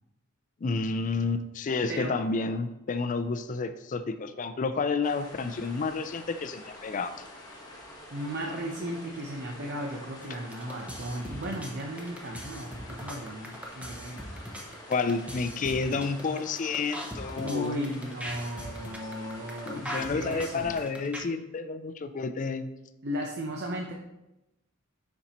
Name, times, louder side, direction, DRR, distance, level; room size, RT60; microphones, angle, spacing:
voice 1, 0.6-7.1 14.9-17.7 19.6-22.7, left 4 dB, 40° left, 10 dB, 0.4 m, -30 dB
sound 1, 5.0-20.9, left 1 dB, 20° left, 1.2 m, -47 dB
voice 2, 8.1-14.3 17.4-20.9 23.0-23.9, equal, 55° right, 0 dB, 0.7 m, -36 dB
sound 2, 10.2-21.2, equal, 5° right, 0.7 m, -40 dB
7.0 x 5.3 x 2.9 m, 0.94 s
head